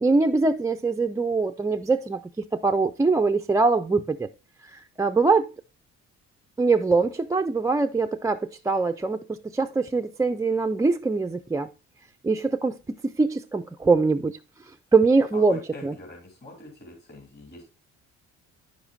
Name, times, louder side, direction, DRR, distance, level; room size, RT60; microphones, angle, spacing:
voice 1, 0.0-2.2 2.5-4.3 4.6-5.5 6.6-11.7 12.2-12.7 13.0-14.4 14.9-15.9, right 3 dB, 10° right, 0.3 m, -23 dB
voice 2, 15.3-17.6, left 1 dB, 35° left, 2.8 m, -44 dB
9.4 x 7.1 x 2.5 m
cardioid pair, 90°, 30 cm